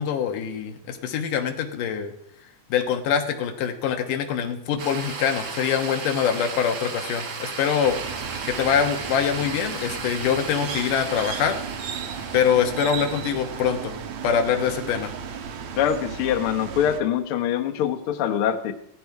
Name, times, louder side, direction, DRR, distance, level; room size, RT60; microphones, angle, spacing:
voice 1, 0.0-2.1 2.7-8.0 8.4-11.6 12.3-14.0 14.2-15.1, left 8 dB, 90° left, 6 dB, 2.9 m, -24 dB
sound 1, 4.8-15.1, right 5 dB, 45° right, 1.4 m, -36 dB
sound 2, 7.8-17.0, right 7 dB, 65° right, 2.3 m, -35 dB
voice 2, 15.8-18.7, left 9 dB, 60° left, 6 dB, 1.6 m, -24 dB
16.0 x 14.5 x 4.7 m, 0.74 s
omnidirectional pair, 3.6 m